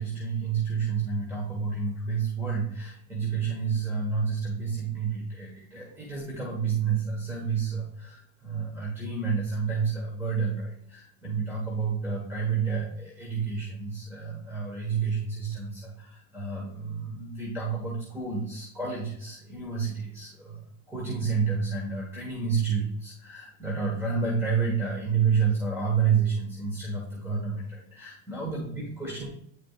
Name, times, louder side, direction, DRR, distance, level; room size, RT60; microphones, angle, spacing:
voice 1, 0.0-20.6 20.9-29.3, right 5 dB, 5° right, -2 dB, 1.4 m, -30 dB
9.7 x 4.9 x 2.4 m, 0.70 s
supercardioid pair, 125°, 37 cm